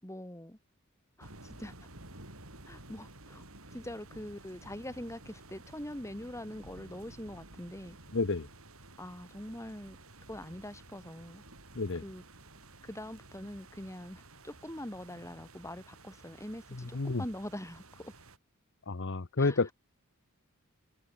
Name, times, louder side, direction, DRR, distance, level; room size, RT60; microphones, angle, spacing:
voice 1, 0.0-0.6 1.2-1.7 2.7-3.4 3.7-8.0 9.0-10.0 10.3-11.4 12.0-12.2 12.8-18.1 19.4-19.6, left 1 dB, 15° left, 4.2 m, -43 dB
sound 1, 1.2-18.4, right 2 dB, 75° right, 7.1 m, -53 dB
voice 2, 8.1-8.5 11.8-12.0 16.9-17.2 18.9-19.7, left 3 dB, 55° left, 0.9 m, -30 dB
head